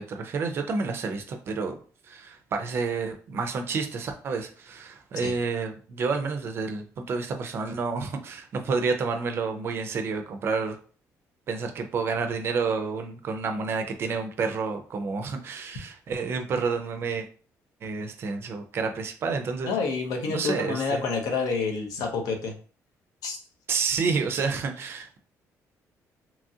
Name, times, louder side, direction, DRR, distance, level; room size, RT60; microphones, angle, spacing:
voice 1, 0.0-1.8 2.0-10.8 11.5-17.3 17.8-19.8 20.3-21.0 23.7-25.2, right 4 dB, 40° right, 5 dB, 0.4 m, -29 dB
voice 2, 19.6-22.5 23.2-23.4, left 4 dB, 85° left, 4 dB, 0.6 m, -28 dB
2.9 x 2.4 x 2.6 m, 0.41 s
cardioid pair, 165°, 6 cm